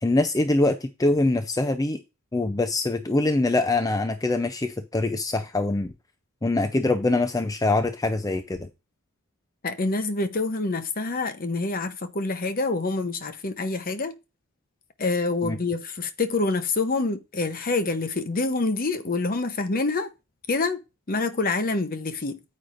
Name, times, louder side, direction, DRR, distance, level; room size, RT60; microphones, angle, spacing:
voice 1, 0.0-2.0 2.3-5.9 6.4-8.7 15.4-15.6, left 2 dB, 15° left, 0.5 m, -24 dB
voice 2, 9.6-14.2 15.0-20.1 20.5-20.8 21.1-22.4, left 3 dB, 40° left, 0.8 m, -26 dB
9.2 x 8.4 x 2.5 m
head